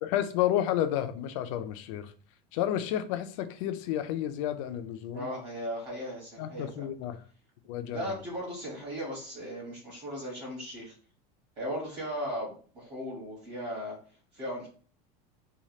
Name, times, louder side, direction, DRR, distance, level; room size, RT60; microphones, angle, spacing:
voice 1, 0.0-2.1 2.5-5.3 6.4-7.2 7.7-8.1, left 11 dB, 50° left, 0.4 m, -31 dB
voice 2, 5.1-6.9 7.9-10.9 11.6-14.0 14.3-14.7, equal, 30° right, 1.2 m, -37 dB
3.1 x 2.3 x 2.7 m
cardioid pair, 180°, 21 cm